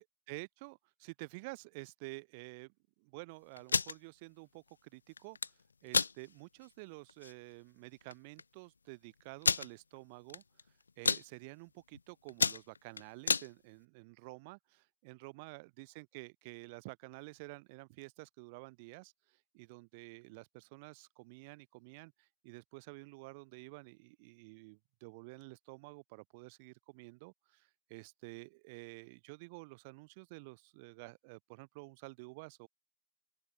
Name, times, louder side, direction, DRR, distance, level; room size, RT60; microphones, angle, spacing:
voice 1, 0.0-5.6 5.8-10.4 11.0-32.7, right 28 dB, 45° right, 1.1 m, -50 dB
sound 1, 3.6-3.9 5.2-5.5 5.9-6.1 6.6-6.7 7.1-7.3 8.1-8.2 8.4-8.5 9.4-9.7 10.3-10.6 10.9-11.2 11.8-12.0 12.3-13.5, left 5 dB, 75° left, 0.4 m, -30 dB
open air
figure-of-eight pair, 90°, 0 cm